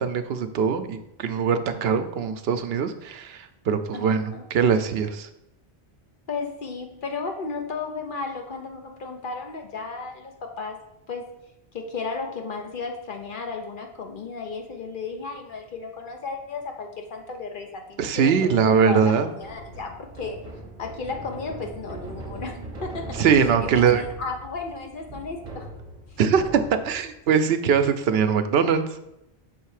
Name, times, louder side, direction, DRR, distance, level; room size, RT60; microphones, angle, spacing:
voice 1, 0.0-5.3 18.0-19.3 23.2-24.0 26.2-28.8, right 6 dB, 75° right, 9 dB, 0.8 m, -22 dB
voice 2, 3.9-4.4 6.3-10.8 11.1-11.3 11.7-20.4 20.8-25.7 26.1-26.2, left 4 dB, 55° left, 3 dB, 0.9 m, -34 dB
sound 1, 19.4-27.1, right 2 dB, 35° right, 1.1 m, -39 dB
6.3 x 3.2 x 4.8 m, 0.86 s
omnidirectional pair, 1.1 m